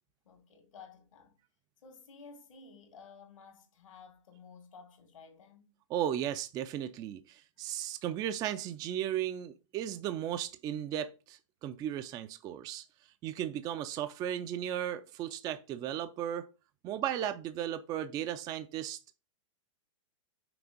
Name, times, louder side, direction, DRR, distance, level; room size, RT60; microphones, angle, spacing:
voice 1, 0.2-1.3 1.8-5.8, left 5 dB, 85° left, 2.1 m, -54 dB
voice 2, 5.9-12.8 13.2-16.5 16.8-19.0, right 10 dB, 25° right, 0.4 m, -35 dB
6.0 x 3.5 x 5.1 m
hypercardioid pair, 135°, 16 cm